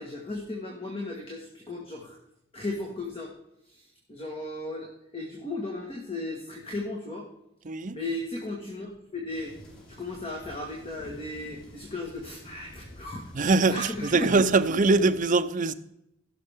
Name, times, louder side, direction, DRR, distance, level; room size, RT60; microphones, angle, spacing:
voice 1, 0.0-2.2 2.5-3.3 3.6-7.3 7.9-9.5 9.9-14.3, left 2 dB, 30° left, 1.7 m, -36 dB
voice 2, 7.6-8.0 13.3-15.7, right 3 dB, 40° right, 0.5 m, -22 dB
sound 1, 9.3-15.2, equal, 75° left, 4.7 m, -49 dB
16.0 x 6.5 x 3.6 m
head